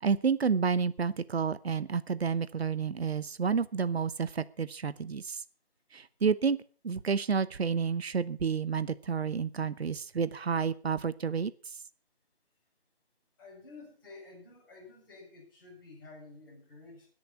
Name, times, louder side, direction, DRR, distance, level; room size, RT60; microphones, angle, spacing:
voice 1, 0.0-5.4 5.9-6.6 6.8-11.5, right 6 dB, 75° right, 16 dB, 0.9 m, -30 dB
voice 2, 13.4-17.1, left 3 dB, 20° left, -5 dB, 6.2 m, -51 dB
20.5 x 6.9 x 5.8 m, 0.41 s
figure-of-eight pair, 175°, 32 cm